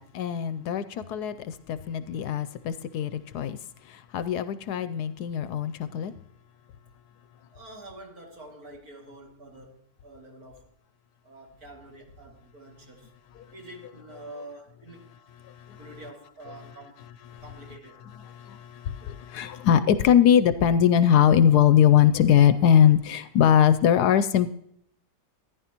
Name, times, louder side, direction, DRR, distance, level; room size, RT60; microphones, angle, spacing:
voice 1, 0.0-3.6 4.1-6.1 17.3-17.4 18.4-24.5, left 9 dB, 75° left, 13 dB, 1.1 m, -21 dB
voice 2, 7.5-10.6 11.2-13.1 13.5-15.1 15.8-17.0 17.4-18.0, right 2 dB, 55° right, 0 dB, 2.8 m, -46 dB
14.5 x 10.5 x 2.9 m, 0.70 s
omnidirectional pair, 1.9 m